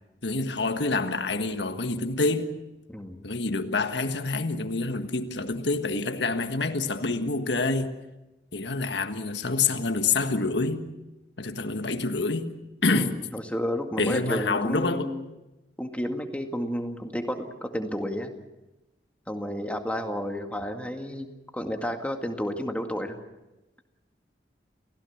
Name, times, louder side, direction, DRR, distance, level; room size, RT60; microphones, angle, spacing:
voice 1, 0.2-2.6 3.2-7.9 8.5-10.9 11.4-12.5 12.8-13.1 14.0-15.1, left 3 dB, 85° left, 1.5 m, -27 dB
voice 2, 2.9-3.2 12.9-15.3 15.8-18.3 19.3-21.3 21.5-23.2, equal, 10° left, 2.0 m, -31 dB
29.5 x 16.5 x 7.2 m
head